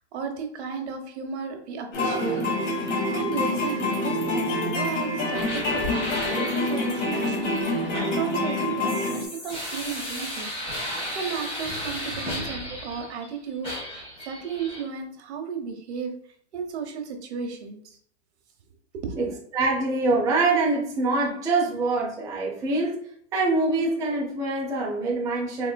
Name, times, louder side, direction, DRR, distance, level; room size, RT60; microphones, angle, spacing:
voice 1, 0.1-2.4 2.8-10.5 10.8-16.2 16.5-18.0 18.9-19.3, right 6 dB, 70° right, 4 dB, 1.0 m, -34 dB
sound 1, 1.9-9.3, left 2 dB, 85° left, 1.4 m, -26 dB
sound 2, 5.3-13.3 13.6-14.8, equal, 15° left, 1.6 m, -34 dB
voice 2, 19.5-23.0 23.3-25.7, right 3 dB, 10° right, -3 dB, 0.5 m, -24 dB
4.2 x 3.3 x 2.2 m, 0.63 s
hypercardioid pair, 150°, 35 cm